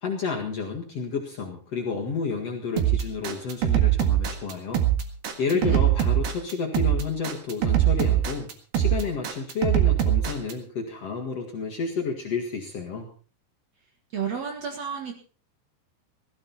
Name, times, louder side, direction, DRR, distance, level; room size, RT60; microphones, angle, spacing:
voice 1, 0.0-4.8 5.4-8.5 8.7-13.1, left 5 dB, 75° left, 0 dB, 1.4 m, -30 dB
sound 1, 2.8-10.5, right 12 dB, 60° right, 3.0 m, -22 dB
voice 2, 14.1-15.1, right 7 dB, 80° right, 3 dB, 1.4 m, -31 dB
16.5 x 15.5 x 4.2 m, 0.38 s
omnidirectional pair, 5.9 m